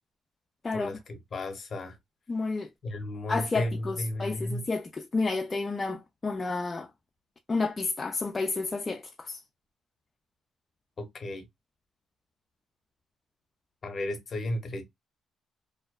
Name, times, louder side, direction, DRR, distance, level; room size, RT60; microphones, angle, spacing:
voice 1, 0.7-2.0 2.8-4.7 11.0-11.4 13.8-14.9, left 1 dB, 45° left, 0.9 m, -34 dB
voice 2, 2.3-2.7 3.3-6.9 7.5-9.4, left 3 dB, 30° left, 0.3 m, -31 dB
2.6 x 2.1 x 2.2 m
cardioid pair, 90°, 0 cm